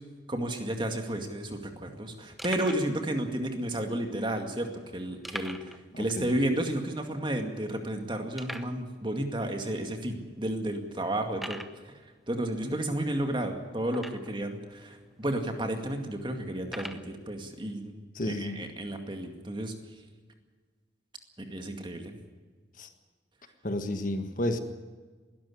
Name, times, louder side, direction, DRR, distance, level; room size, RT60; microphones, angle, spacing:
voice 1, 0.3-12.0 12.3-19.7 21.4-22.1, right 1 dB, 25° right, 5 dB, 2.2 m, -32 dB
sound 1, 2.4-2.9 3.7-3.8 5.2-5.8 6.1-6.2 6.7-6.8 7.3-7.4 8.4-8.8 9.6-9.7 10.3-10.4 11.3-11.8 13.9-14.4 15.2-15.3 16.6-17.1, equal, ahead, 0.8 m, -41 dB
voice 2, 5.9-6.3 18.1-18.6 22.8-22.9 23.6-24.6, left 1 dB, 45° left, 8 dB, 1.5 m, -31 dB
20.5 x 13.0 x 9.9 m, 1.4 s
head